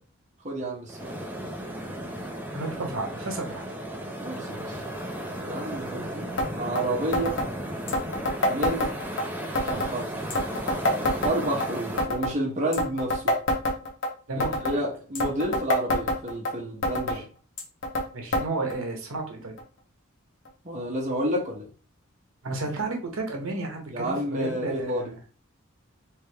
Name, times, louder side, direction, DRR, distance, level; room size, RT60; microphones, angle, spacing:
voice 1, 0.4-1.2 4.2-4.8 5.4-6.3 6.6-7.4 8.4-8.9 9.6-10.1 11.2-13.4 14.4-17.2 20.6-21.7 23.9-25.1, right 1 dB, 35° right, 0.8 m, -30 dB
sound 1, 0.9-12.0, right 1 dB, 10° right, 0.5 m, -35 dB
voice 2, 2.5-3.6 14.3-14.8 17.1-17.2 18.1-19.5 22.4-25.1, right 3 dB, 70° right, 1.0 m, -32 dB
sound 2, 6.4-6.5 6.8-6.9 7.1-7.5 7.9-9.2 9.6-9.9 10.3-11.7 12.0-12.4 12.7-14.1 14.4-14.8 15.2-16.5 16.8-17.2 17.6-18.1 18.3-18.5 18.7-18.8 19.6-19.7 20.5-20.6, left 1 dB, 55° left, 0.9 m, -26 dB
3.3 x 3.2 x 3.4 m
head